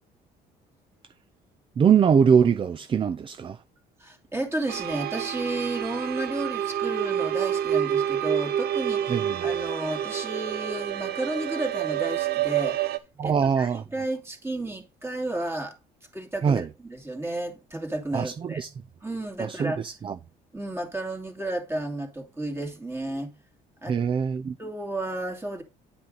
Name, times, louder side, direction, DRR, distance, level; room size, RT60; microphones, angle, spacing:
voice 1, 1.8-3.6 9.1-9.4 13.2-13.8 16.4-16.7 18.1-18.7 19.4-20.1 23.9-24.5, right 7 dB, 30° right, 0.4 m, -22 dB
voice 2, 4.0-12.8 13.2-15.7 16.1-18.6 19.0-19.8 20.5-23.3 23.8-24.0 24.6-25.6, right 2 dB, 15° right, 2.6 m, -32 dB
sound 1, 4.7-13.0, right 10 dB, 70° right, 0.8 m, -28 dB
10.5 x 5.4 x 4.0 m
cardioid pair, 110°, 17 cm